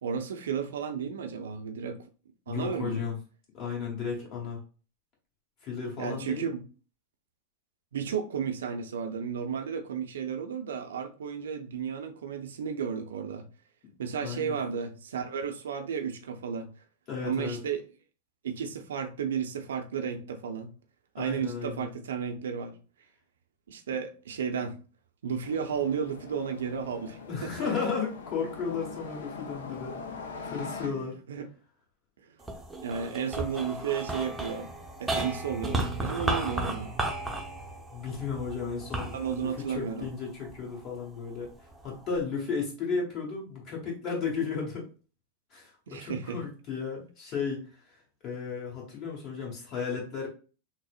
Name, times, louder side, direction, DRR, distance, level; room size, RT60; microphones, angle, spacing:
voice 1, 0.0-2.0 2.5-3.1 6.0-6.6 7.9-13.4 14.0-16.7 17.2-17.8 18.4-20.7 21.1-22.8 23.7-24.8 25.2-27.7 30.8-31.5 32.2-32.3 32.8-34.7 35.0-37.0 39.1-40.1 45.9-46.4, right 7 dB, 65° right, 0.5 m, -33 dB
voice 2, 2.5-3.2 3.5-4.6 5.6-6.5 13.8-13.9 14.2-14.6 17.1-17.6 21.2-21.9 27.3-30.0 30.4-31.2 37.9-41.5 41.8-44.8 45.5-48.0 48.2-50.3, left 5 dB, 40° left, 1.4 m, -34 dB
sound 1, 25.4-30.9, left 4 dB, 60° left, 0.5 m, -42 dB
sound 2, 32.4-40.9 41.4-42.2, right 2 dB, 5° right, 0.7 m, -34 dB
5.9 x 2.0 x 2.4 m
figure-of-eight pair, 90°, 0 cm